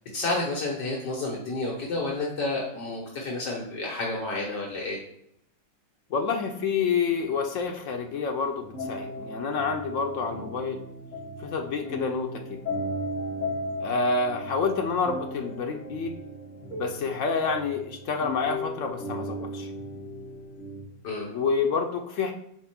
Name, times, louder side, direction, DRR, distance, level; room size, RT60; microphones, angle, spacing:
voice 1, 0.1-5.0 21.0-21.3, left 2 dB, 70° left, -3 dB, 1.7 m, -30 dB
voice 2, 6.1-10.8 11.4-12.6 13.8-16.1 16.8-19.7 21.3-22.3, left 5 dB, 90° left, 4 dB, 0.6 m, -28 dB
sound 1, 8.6-20.8, equal, 40° left, 2.0 m, -36 dB
4.6 x 4.3 x 5.8 m, 0.74 s
omnidirectional pair, 2.0 m